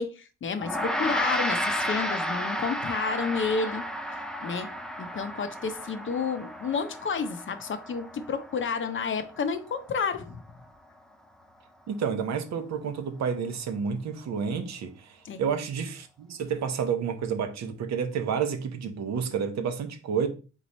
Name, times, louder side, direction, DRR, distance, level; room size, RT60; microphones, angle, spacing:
voice 1, 0.0-3.9 4.4-4.7 5.0-10.4 15.2-15.4, left 5 dB, 40° left, 0.6 m, -30 dB
Gong, 0.6-10.1, equal, ahead, 0.4 m, -33 dB
voice 2, 11.9-20.3, right 6 dB, 65° right, 0.8 m, -30 dB
3.7 x 3.0 x 4.1 m
cardioid pair, 90°, 30 cm